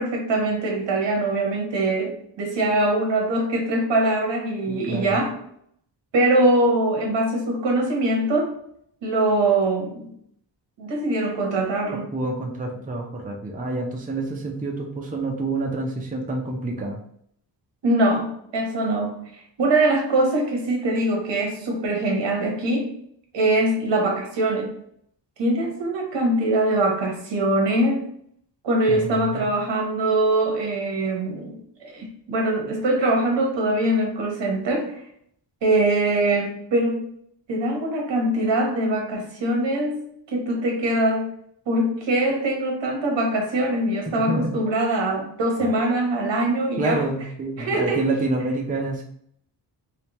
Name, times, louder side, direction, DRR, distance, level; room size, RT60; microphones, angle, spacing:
voice 1, 0.0-5.4 6.1-8.5 9.0-10.1 10.8-12.1 17.8-22.9 23.3-24.7 25.4-28.1 28.6-35.0 35.6-37.1 37.5-39.9 40.3-41.3 41.7-47.0 47.6-48.0, right 1 dB, 80° right, 1 dB, 1.2 m, -23 dB
voice 2, 4.7-5.2 12.1-17.0 28.9-29.5 44.1-44.5 45.6-45.8 46.8-49.0, right 2 dB, 20° right, 0 dB, 0.5 m, -28 dB
3.3 x 3.2 x 2.9 m, 0.68 s
wide cardioid pair, 135°, 43 cm